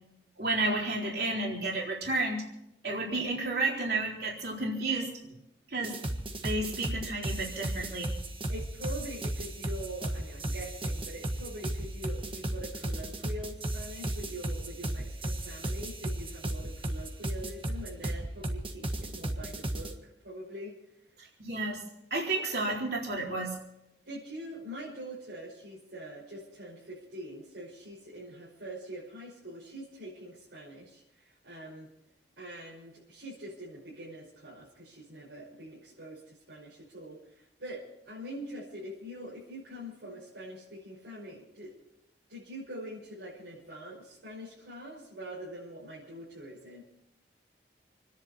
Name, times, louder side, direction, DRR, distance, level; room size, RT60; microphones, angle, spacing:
voice 1, 0.4-2.4 2.8-5.1 5.7-5.9 6.4-8.1 21.2-21.8 22.1-23.5, right 2 dB, 60° right, -2 dB, 4.1 m, -31 dB
sound 1, 5.8-19.9, right 1 dB, 30° right, 1.4 m, -34 dB
voice 2, 8.5-20.8 24.0-31.9 32.4-41.7 42.3-46.8, equal, 90° right, -7 dB, 5.7 m, -44 dB
28.5 x 10.5 x 4.3 m, 0.84 s
head